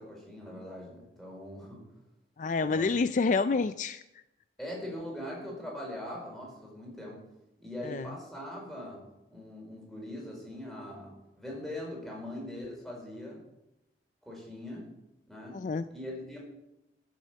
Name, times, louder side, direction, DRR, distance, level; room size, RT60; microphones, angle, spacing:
voice 1, 0.0-1.8 2.6-2.9 4.6-7.2 7.6-9.0 9.3-13.4 14.2-14.9 15.3-15.6 15.9-16.4, left 1 dB, ahead, -3 dB, 5.0 m, -41 dB
voice 2, 2.4-4.0 7.8-8.1 15.5-15.8, left 4 dB, 45° left, 12 dB, 0.4 m, -28 dB
15.0 x 7.7 x 7.5 m, 0.91 s
head